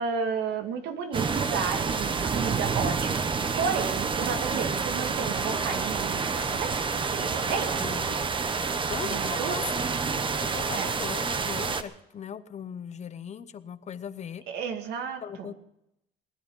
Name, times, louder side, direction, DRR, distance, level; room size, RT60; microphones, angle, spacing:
voice 1, 0.0-3.3 3.6-6.8 7.1-8.2 9.0-9.6 10.8-10.9 14.5-15.5, right 6 dB, 80° right, 6 dB, 2.2 m, -32 dB
sound 1, 1.1-11.8, right 5 dB, 30° right, 1.1 m, -28 dB
voice 2, 7.4-8.3 8.9-9.8 10.4-14.4 15.2-15.5, left 8 dB, 40° left, 13 dB, 0.9 m, -39 dB
20.0 x 11.0 x 5.5 m, 0.81 s
cardioid pair, 110°, 17 cm